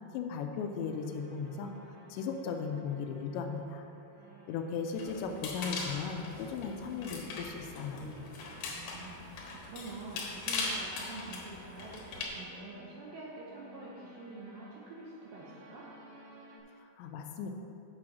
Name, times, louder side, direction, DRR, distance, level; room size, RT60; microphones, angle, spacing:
voice 1, 0.1-3.9 4.5-8.1 16.8-17.5, left 5 dB, 85° left, 5 dB, 2.8 m, -37 dB
sound 1, 0.5-16.6, right 1 dB, 45° right, 1.9 m, -56 dB
sound 2, 5.0-12.3, left 3 dB, 65° left, 2.5 m, -40 dB
voice 2, 8.7-15.9, right 3 dB, 75° right, -4 dB, 2.2 m, -47 dB
7.7 x 6.7 x 6.0 m, 2.9 s
omnidirectional pair, 5.1 m